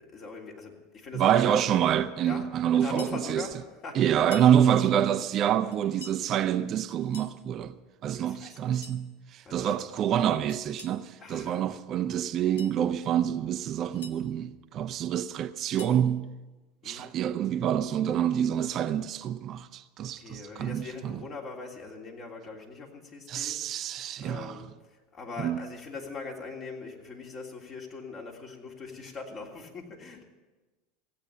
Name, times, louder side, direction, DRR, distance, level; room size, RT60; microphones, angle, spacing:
voice 1, 0.0-1.6 2.2-2.5 2.7-4.1 8.1-8.8 9.4-9.9 11.2-11.7 16.8-17.1 20.2-23.7 24.2-24.7 25.1-30.2, left 4 dB, 40° left, 3.1 m, -41 dB
voice 2, 1.1-3.5 3.9-7.7 8.0-16.3 16.8-21.2 23.3-24.6 25.4-25.6, right 10 dB, 45° right, 0.6 m, -27 dB
sound 1, 2.8-3.2 4.2-4.6 5.7-6.2 6.9-7.4 8.5-9.0 10.5-11.0 12.3-12.8 13.6-14.2 15.4-16.0, left 5 dB, 85° left, 1.1 m, -47 dB
16.0 x 8.8 x 8.2 m
hypercardioid pair, 85°, 0 cm